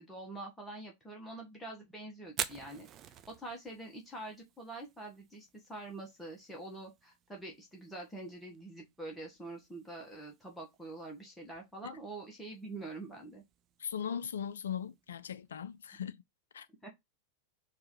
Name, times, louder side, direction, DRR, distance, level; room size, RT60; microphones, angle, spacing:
voice 1, 0.0-13.4 16.8-16.9, right 2 dB, 5° left, 1.3 m, -45 dB
Fire, 2.2-16.1, right 10 dB, 30° right, 0.4 m, -49 dB
voice 2, 13.8-16.2 16.5-16.7, left 8 dB, 65° left, 0.4 m, -39 dB
4.7 x 2.7 x 4.1 m
figure-of-eight pair, 90°, 0 cm